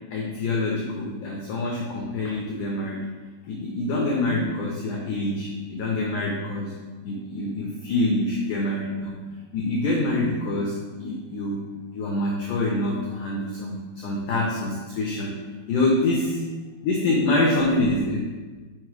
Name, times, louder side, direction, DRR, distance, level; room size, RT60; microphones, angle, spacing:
voice 1, 0.1-3.0 3.5-6.7 7.0-9.1 9.5-11.6 11.9-15.4 15.7-16.4 16.8-18.2, left 2 dB, 90° left, -2 dB, 1.8 m, -26 dB
6.2 x 4.8 x 4.7 m, 1.3 s
omnidirectional pair, 4.8 m